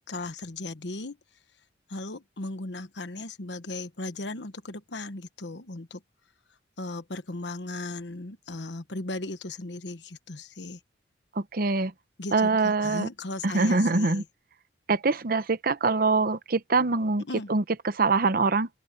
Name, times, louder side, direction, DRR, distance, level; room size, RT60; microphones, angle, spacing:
voice 1, 0.1-1.2 1.9-6.0 6.8-10.8 12.2-14.2 17.2-17.5, left 2 dB, 70° left, 1.3 m, -36 dB
voice 2, 11.4-11.9 12.3-13.1 13.4-14.2 14.9-17.2 17.5-18.7, right 3 dB, 55° right, 0.8 m, -24 dB
head